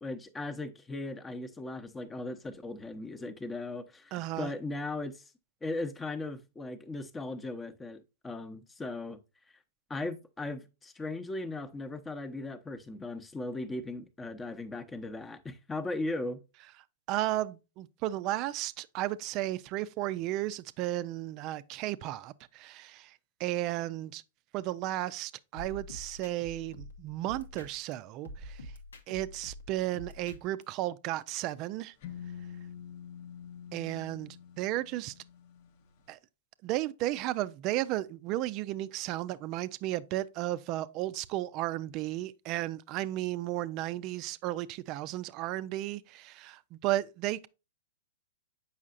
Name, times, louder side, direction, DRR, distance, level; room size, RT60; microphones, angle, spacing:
voice 1, 0.0-5.3 5.6-9.2 9.9-16.4, left 2 dB, 15° left, 0.8 m, -38 dB
voice 2, 4.1-4.5 17.1-24.2 24.5-28.7 29.1-31.9 33.7-35.1 36.1-36.2 36.6-47.5, right 15 dB, 40° right, 0.4 m, -34 dB
sound 1, 25.6-27.9 28.2-30.6, equal, 90° left, 1.1 m, -46 dB
sound 2, 32.0-35.9, left 8 dB, 55° left, 0.8 m, -46 dB
7.3 x 5.6 x 2.5 m
hypercardioid pair, 115°, 0 cm